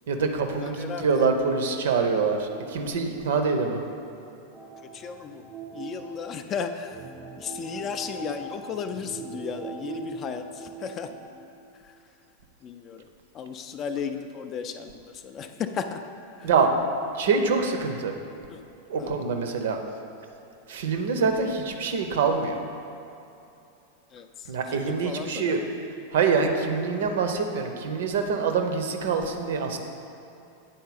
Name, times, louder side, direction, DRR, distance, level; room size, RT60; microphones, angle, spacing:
voice 1, 0.1-3.8 16.4-16.7 17.2-18.1 18.9-19.8 20.7-22.6 24.5-25.6 26.1-29.8, right 5 dB, 60° right, 5 dB, 0.6 m, -25 dB
voice 2, 0.6-1.3 4.9-5.4 5.7-7.0 7.4-11.1 12.6-13.0 13.3-16.0 16.4-16.5 18.5-18.6 19.0-19.1 24.1-24.3 24.7-25.7, left 6 dB, 30° left, 8 dB, 0.3 m, -34 dB
sound 1, 4.5-11.3, right 4 dB, 15° right, 0.6 m, -41 dB
9.1 x 3.9 x 4.0 m, 2.8 s
figure-of-eight pair, 90°, 0 cm